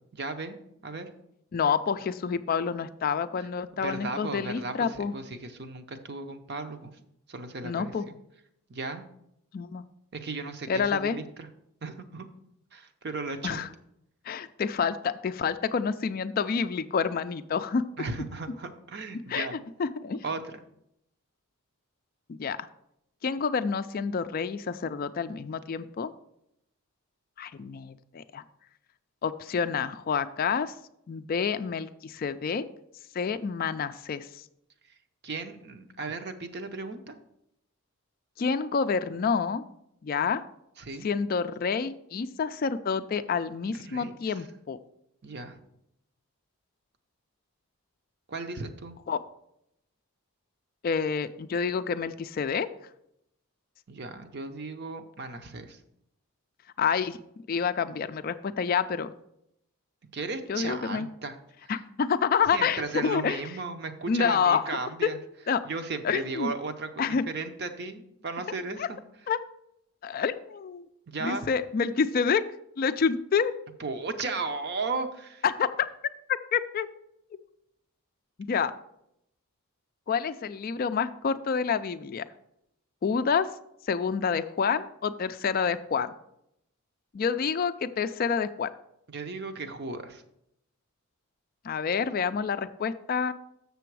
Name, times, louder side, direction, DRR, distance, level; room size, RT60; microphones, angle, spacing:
voice 1, 0.1-0.6 0.8-1.1 3.8-6.9 7.3-8.1 8.7-9.0 10.1-11.5 11.8-12.3 12.7-13.6 18.0-19.6 20.2-20.6 35.2-37.1 40.8-41.1 43.8-44.3 45.2-45.6 48.3-49.0 53.9-55.8 60.1-61.4 61.6-61.7 62.5-65.2 65.6-69.0 71.1-71.5 73.8-75.4 89.1-90.2, right 3 dB, 50° right, 8 dB, 0.7 m, -35 dB
voice 2, 1.5-5.1 7.6-8.1 9.5-9.8 10.7-11.2 13.4-13.7 14.3-17.8 19.3-19.5 19.8-20.2 22.3-22.6 23.2-26.1 27.4-28.4 29.2-30.7 31.1-32.7 33.1-34.4 38.4-39.6 40.0-40.4 41.0-44.8 49.1-49.2 50.8-52.7 56.8-57.2 57.5-59.1 60.5-61.1 61.7-63.4 64.1-65.1 65.5-65.6 66.0-66.5 67.0-67.2 68.8-68.9 69.3-69.4 70.0-70.9 71.2-72.4 72.8-73.5 75.4-75.7 76.5-76.9 78.4-78.7 80.1-82.3 83.0-83.5 83.9-86.1 87.1-88.7 91.6-93.3, left 6 dB, 40° left, 11 dB, 0.3 m, -28 dB
6.9 x 6.8 x 4.7 m, 0.78 s
head